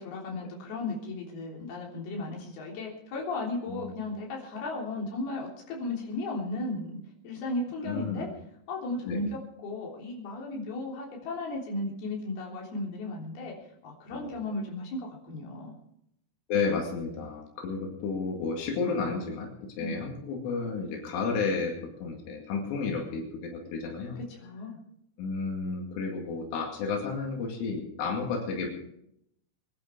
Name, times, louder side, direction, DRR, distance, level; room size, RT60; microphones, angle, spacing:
voice 1, 0.0-7.0 7.2-8.3 8.7-13.5 13.8-15.8 19.8-20.0 24.3-24.8, left 2 dB, 55° left, -2 dB, 5.1 m, -35 dB
voice 2, 7.8-8.3 9.1-9.2 14.1-14.3 16.5-24.2 25.2-28.7, left 4 dB, 85° left, 1 dB, 4.8 m, -32 dB
23.0 x 11.5 x 4.6 m, 0.76 s
omnidirectional pair, 5.5 m